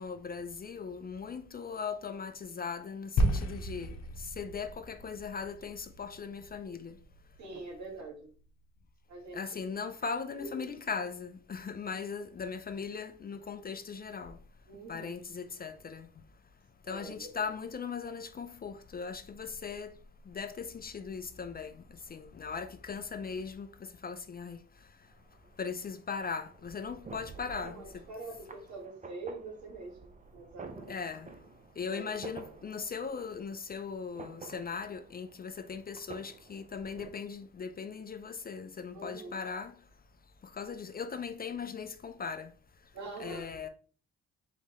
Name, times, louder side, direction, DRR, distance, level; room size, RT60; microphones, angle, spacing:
voice 1, 0.0-7.0 9.3-14.4 14.9-16.1 16.9-20.0 20.3-24.6 25.6-28.0 30.9-31.3 31.8-39.7 40.4-42.5 43.2-43.7, left 5 dB, 30° left, 0.5 m, -39 dB
sound 1, 3.2-7.5, equal, 60° left, 1.0 m, -34 dB
voice 2, 7.4-8.3 9.1-9.4 10.3-10.6 14.7-15.3 16.9-17.3 27.4-31.0 31.8-32.1 38.9-39.4 42.9-43.7, right 2 dB, 65° right, 1.9 m, -44 dB
sound 2, 25.0-37.1, right 4 dB, 25° right, 0.6 m, -51 dB
4.1 x 4.1 x 3.1 m
cardioid pair, 90°, 30 cm